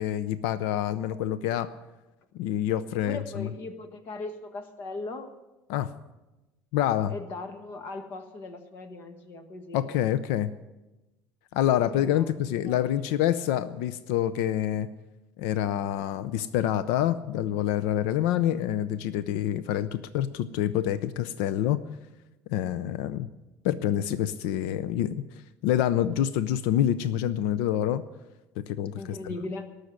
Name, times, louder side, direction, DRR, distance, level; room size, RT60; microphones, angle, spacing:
voice 1, 0.0-1.7 2.3-3.5 5.7-5.9 6.7-7.1 9.7-10.5 11.5-14.9 15.4-21.8 22.5-23.3 23.6-28.0 28.6-29.2, left 11 dB, 85° left, 14 dB, 0.6 m, -27 dB
voice 2, 2.9-5.3 7.1-9.8 11.9-12.9 28.9-29.7, left 3 dB, 40° left, 9 dB, 1.3 m, -39 dB
18.5 x 6.5 x 9.5 m, 1.0 s
cardioid pair, 180°, 6 cm